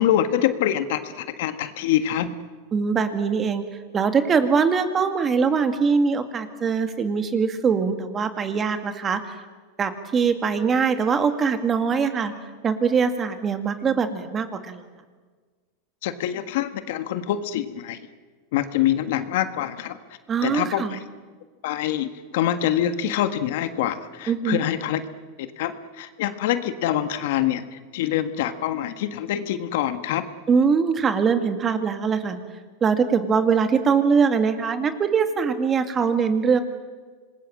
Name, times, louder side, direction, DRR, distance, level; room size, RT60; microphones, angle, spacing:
voice 1, 0.0-2.4 16.0-18.0 18.5-21.0 21.6-25.0 25.4-30.2, left 11 dB, 70° left, 10 dB, 1.6 m, -25 dB
voice 2, 2.7-3.6 3.9-9.4 9.8-12.3 12.6-14.8 20.3-21.0 24.3-24.6 30.5-32.4 32.8-36.6, right 5 dB, 25° right, 8 dB, 2.1 m, -22 dB
26.0 x 20.5 x 7.7 m, 1.4 s
supercardioid pair, 130°, 0 cm